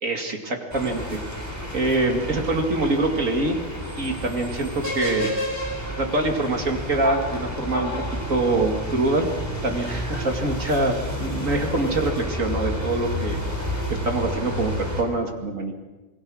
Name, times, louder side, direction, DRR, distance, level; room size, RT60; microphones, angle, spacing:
voice 1, 0.0-1.2 1.7-3.6 4.0-5.4 6.0-7.9 8.3-9.3 9.6-13.4 13.7-15.7, right 2 dB, 40° right, 3 dB, 2.7 m, -25 dB
sound 1, 0.7-15.0, left 1 dB, 10° right, 3.9 m, -30 dB
27.5 x 20.5 x 6.4 m, 1.2 s
omnidirectional pair, 2.2 m